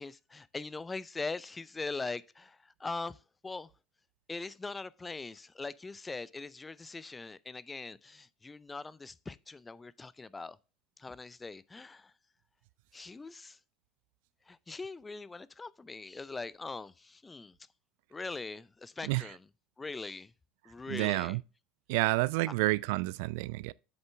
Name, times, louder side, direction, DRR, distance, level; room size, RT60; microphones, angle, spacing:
voice 1, 0.0-3.7 4.3-10.6 11.0-12.1 12.9-13.6 14.5-17.6 18.1-19.5 19.8-20.3 20.6-21.4 22.5-22.6, left 3 dB, 20° left, 0.5 m, -41 dB
voice 2, 20.9-21.4 21.9-23.7, right 21 dB, 65° right, 0.3 m, -29 dB
8.1 x 6.6 x 3.4 m
hypercardioid pair, 75°, 0 cm